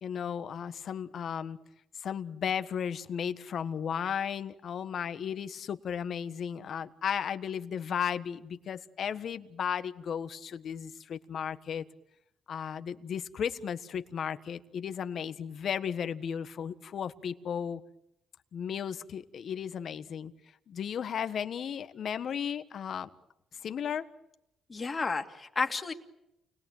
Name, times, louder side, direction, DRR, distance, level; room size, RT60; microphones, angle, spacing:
voice 1, 0.0-1.6 1.9-11.8 12.5-17.8 18.5-20.3 20.7-23.1 23.6-24.1, left 8 dB, 60° left, 11 dB, 1.4 m, -35 dB
voice 2, 24.7-25.9, left 4 dB, 30° left, 5 dB, 2.6 m, -31 dB
29.0 x 21.0 x 9.1 m, 0.86 s
cardioid pair, 90°, 0 cm